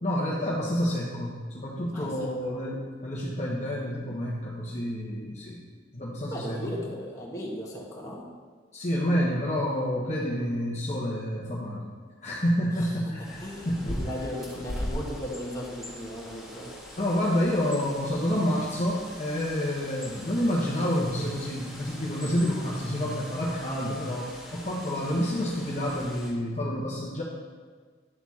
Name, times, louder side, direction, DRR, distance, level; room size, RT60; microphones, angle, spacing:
voice 1, 0.0-5.6 5.9-6.7 8.7-11.8 12.2-14.0 17.0-27.2, equal, 35° left, -6 dB, 1.2 m, -29 dB
voice 2, 1.9-2.3 6.3-8.3 12.8-12.9 13.4-16.7, equal, 15° left, -4 dB, 1.7 m, -36 dB
Bird, 13.2-26.3, equal, ahead, 1.7 m, -41 dB
11.0 x 7.0 x 4.2 m, 1.5 s
head